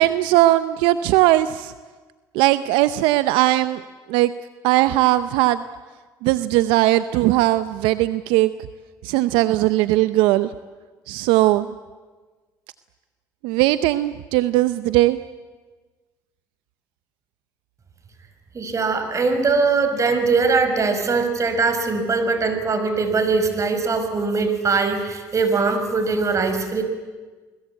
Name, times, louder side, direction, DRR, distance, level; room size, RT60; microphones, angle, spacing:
voice 1, 0.0-1.7 2.3-3.8 4.1-4.3 4.6-5.6 6.2-8.5 9.0-10.5 11.1-11.7 13.4-15.2, right 16 dB, 85° right, 13 dB, 0.7 m, -18 dB
voice 2, 18.5-26.8, right 4 dB, 40° right, 8 dB, 5.3 m, -21 dB
29.0 x 21.0 x 8.4 m, 1.3 s
supercardioid pair, 70°, 8 cm